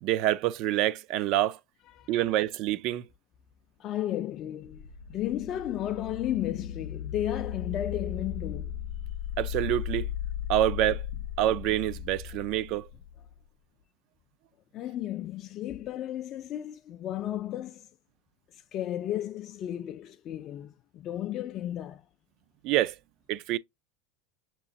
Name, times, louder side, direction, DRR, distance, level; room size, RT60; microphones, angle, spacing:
voice 1, 0.0-1.6 2.1-3.0 9.4-10.1 10.5-11.0 11.4-12.9 22.6-22.9 23.3-23.6, right 13 dB, 55° right, 0.3 m, -26 dB
voice 2, 3.8-8.8 14.7-17.9 18.5-22.0, left 12 dB, 45° left, 0.3 m, -34 dB
sound 1, 4.6-13.4, left 9 dB, 85° left, 0.6 m, -36 dB
6.0 x 2.9 x 2.6 m
supercardioid pair, 115°, 0 cm